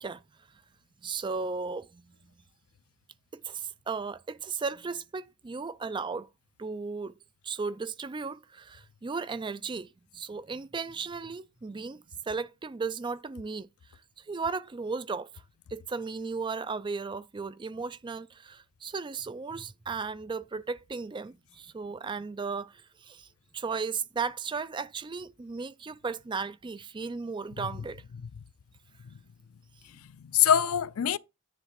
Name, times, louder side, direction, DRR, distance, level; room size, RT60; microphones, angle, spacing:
voice 1, 1.0-2.0 3.3-6.3 6.6-7.1 7.4-9.9 10.1-13.7 14.2-15.3 15.7-23.3 23.5-28.0, right 4 dB, 20° right, 0.3 m, -35 dB
voice 2, 29.9-31.2, left 9 dB, 75° left, 0.4 m, -25 dB
10.0 x 3.5 x 5.8 m
head